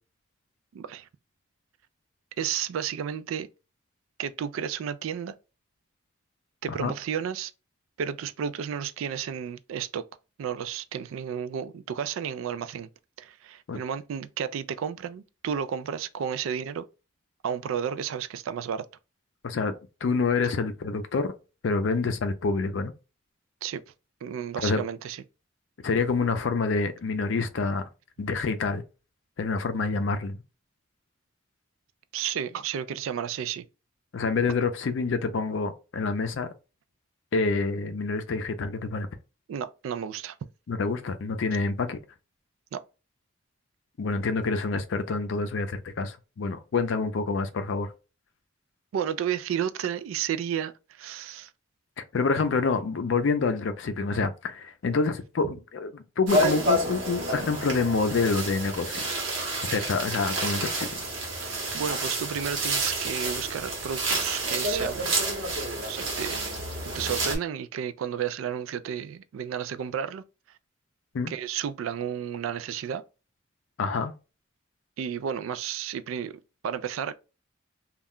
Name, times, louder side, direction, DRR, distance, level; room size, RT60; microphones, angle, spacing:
voice 1, 0.7-1.1 2.4-3.5 4.2-5.3 6.6-7.5 8.0-10.0 10.4-12.9 13.2-16.8 17.4-18.8 23.6-23.8 24.2-25.2 32.1-33.7 39.5-40.4 42.7-42.8 48.9-51.5 61.4-65.1 65.9-66.6 66.8-70.2 71.3-73.0 75.0-77.1, right 8 dB, 90° right, 0.3 m, -32 dB
voice 2, 20.0-21.3 21.6-22.9 24.6-24.8 25.8-27.9 28.2-28.8 29.4-30.4 34.1-36.5 37.3-39.1 40.7-42.0 44.0-47.9 52.1-59.0 59.6-61.0 71.1-71.3 73.8-74.1, left 4 dB, 70° left, 0.4 m, -27 dB
sound 1, 56.3-67.4, right 1 dB, 70° right, 1.0 m, -29 dB
2.3 x 2.1 x 3.6 m
head